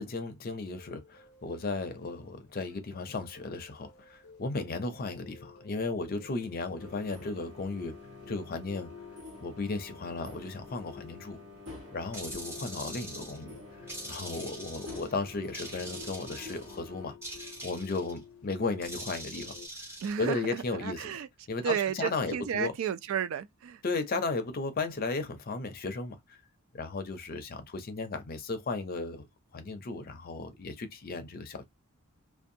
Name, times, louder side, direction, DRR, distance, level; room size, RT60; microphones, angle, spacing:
voice 1, 0.0-8.0 8.3-8.9 9.4-11.4 11.9-13.6 14.0-17.1 17.6-19.6 20.2-21.1 21.5-22.7 23.8-26.4 26.7-29.3 29.5-31.7, left 3 dB, 40° left, 0.5 m, -35 dB
sound 1, 0.7-19.7, left 6 dB, 85° left, 0.6 m, -52 dB
sound 2, 6.8-17.2, left 2 dB, 80° right, 1.2 m, -49 dB
sound 3, 12.1-13.4 13.9-15.1 15.5-16.8 17.2-18.2 18.8-20.1, right 1 dB, 10° right, 0.6 m, -43 dB
voice 2, 20.0-21.3 21.6-23.8, right 8 dB, 60° right, 0.3 m, -32 dB
2.6 x 2.2 x 2.6 m
head